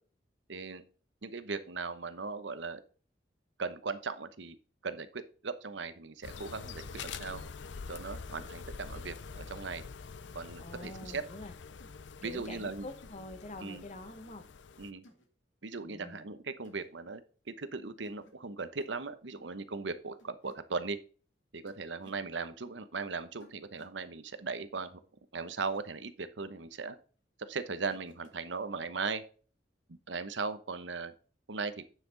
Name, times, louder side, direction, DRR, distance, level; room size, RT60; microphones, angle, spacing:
voice 1, 0.5-0.8 1.2-2.8 3.6-4.6 4.8-7.4 7.9-9.8 10.3-11.2 12.2-12.9 13.6-13.8 14.8-15.0 15.6-21.0 21.5-25.0 25.3-27.0 27.4-29.2 29.9-31.1 31.5-31.8, right 4 dB, 75° right, 12 dB, 0.9 m, -38 dB
sound 1, 6.2-14.9, left 5 dB, 75° left, 0.6 m, -46 dB
voice 2, 10.6-11.6 12.2-14.5 15.8-16.3, left 2 dB, 40° left, 8 dB, 1.4 m, -46 dB
sound 2, 11.8-12.0 12.4-12.7 13.0-13.2 13.5-13.8 15.0-15.3 16.6-16.9 18.0-18.3 18.6-19.0 20.2-20.6 21.7-22.2 23.4-24.0 25.6-25.8 27.9-28.4, left 1 dB, 90° left, 2.3 m, -60 dB
9.9 x 6.0 x 3.9 m, 0.39 s
head